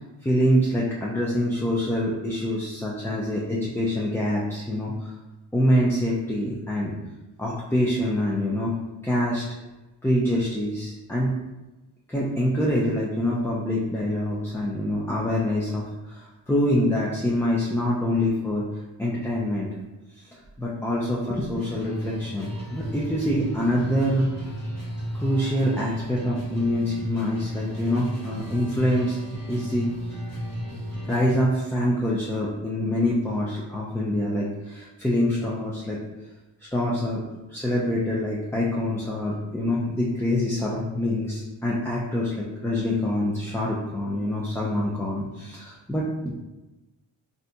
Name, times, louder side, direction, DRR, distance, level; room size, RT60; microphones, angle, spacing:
voice 1, 0.2-5.1 5.5-6.9 7.4-8.7 9.0-9.4 10.0-11.4 12.1-18.6 19.0-19.7 20.3-24.3 25.1-29.2 29.5-29.9 31.1-36.0 36.7-37.2 37.5-46.3, left 1 dB, 5° left, -5 dB, 0.4 m, -25 dB
sound 1, 21.5-31.4, equal, 45° left, 1.2 m, -34 dB
3.9 x 2.7 x 2.2 m, 1.1 s
wide cardioid pair, 100°, 47 cm